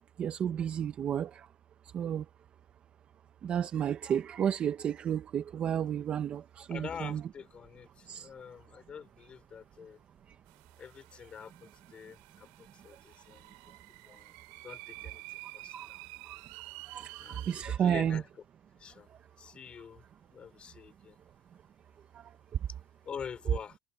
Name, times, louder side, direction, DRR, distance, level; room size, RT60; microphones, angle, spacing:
voice 1, 0.2-1.4 1.9-2.2 3.4-7.2 8.1-8.3 15.7-15.9 16.9-17.1 17.5-18.2, right 9 dB, 30° right, 0.8 m, -31 dB
voice 2, 6.7-10.0 10.8-13.6 14.0-16.0 17.2-18.3 18.8-19.1 19.4-21.2 23.0-23.8, left 7 dB, 25° left, 5.2 m, -46 dB
sound 1, 10.5-17.6, right 33 dB, 70° right, 5.6 m, -50 dB
cardioid pair, 150°, 4 cm